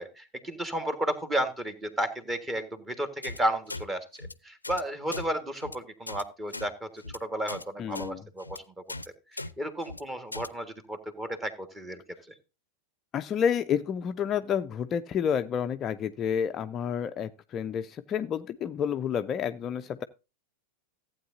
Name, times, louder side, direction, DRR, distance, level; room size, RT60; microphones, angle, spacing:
voice 1, 0.0-8.6 9.3-12.0, right 1 dB, 15° right, 10 dB, 1.5 m, -33 dB
sound 1, 3.2-3.4 3.7-3.8 4.1-4.3 4.6-4.8 5.1-5.3 5.6-5.8 6.1-6.2 6.5-6.7 7.0-7.2 7.5-7.6 7.9-8.1 8.4-8.6 8.9-9.1 9.4-9.5 9.8-10.0 10.3-10.5, left 2 dB, 80° left, 0.5 m, -38 dB
voice 2, 7.8-8.2 13.1-20.0, left 8 dB, 30° left, 9 dB, 0.4 m, -29 dB
15.0 x 8.7 x 2.6 m, 0.28 s
figure-of-eight pair, 90°, 0 cm